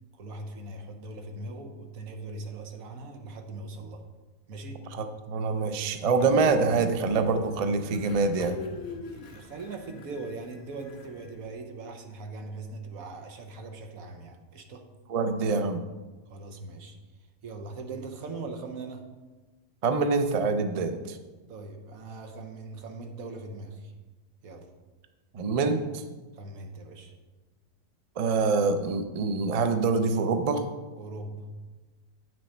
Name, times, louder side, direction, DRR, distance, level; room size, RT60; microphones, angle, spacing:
voice 1, 0.1-4.0 4.5-4.8 9.0-14.9 16.3-17.0 17.4-19.0 21.5-23.9 24.4-24.7 26.4-27.1 30.9-31.5, right 3 dB, 90° right, 5 dB, 1.4 m, -40 dB
voice 2, 4.9-8.6 15.1-15.8 19.8-21.2 25.3-25.8 28.2-30.6, right 4 dB, 50° right, 7 dB, 0.4 m, -25 dB
Train, 6.2-11.5, left 2 dB, 85° left, 1.4 m, -42 dB
9.0 x 6.2 x 4.3 m, 1.2 s
omnidirectional pair, 1.4 m